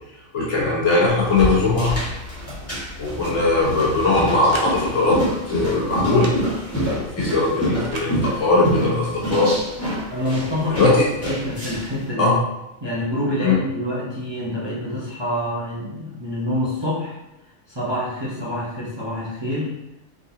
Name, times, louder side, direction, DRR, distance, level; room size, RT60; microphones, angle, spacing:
voice 1, 0.3-1.9 3.0-5.2 5.5-6.3 6.8-9.5 10.7-11.0 12.2-12.3 13.4-13.6, left 3 dB, 60° left, -4 dB, 1.3 m, -19 dB
sound 1, 1.1-12.0, equal, 10° left, 1.4 m, -27 dB
sound 2, 4.2-4.7 6.1-6.4 7.8-8.1, right 2 dB, 80° right, 1.1 m, -34 dB
voice 2, 10.1-11.0 11.3-12.4 12.8-17.1 17.7-19.7, left 1 dB, 25° right, -8 dB, 0.9 m, -26 dB
4.0 x 3.7 x 2.7 m, 0.94 s
omnidirectional pair, 1.4 m